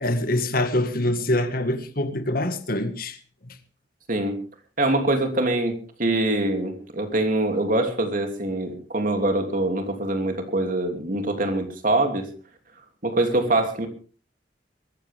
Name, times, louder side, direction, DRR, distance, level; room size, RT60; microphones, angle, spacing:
voice 1, 0.0-3.2, left 1 dB, 55° left, 1.9 m, -24 dB
voice 2, 4.8-12.3 13.0-13.9, right 2 dB, 50° right, 3.0 m, -24 dB
22.0 x 14.5 x 3.6 m
head